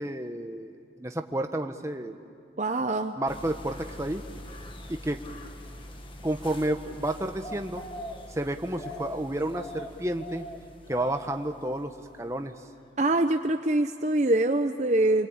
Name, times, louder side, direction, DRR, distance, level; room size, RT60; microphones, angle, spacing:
voice 1, 0.0-2.1 3.1-4.2 4.9-5.2 6.2-7.8 8.3-10.5 10.9-11.9 12.2-12.5, right 1 dB, 15° right, 6 dB, 1.2 m, -31 dB
voice 2, 2.6-3.2 13.0-15.3, right 2 dB, 40° right, 7 dB, 0.7 m, -24 dB
sound 1, 3.3-12.5 12.8-12.9, left 1 dB, 30° left, 1.5 m, -43 dB
28.5 x 23.5 x 8.8 m, 2.4 s
head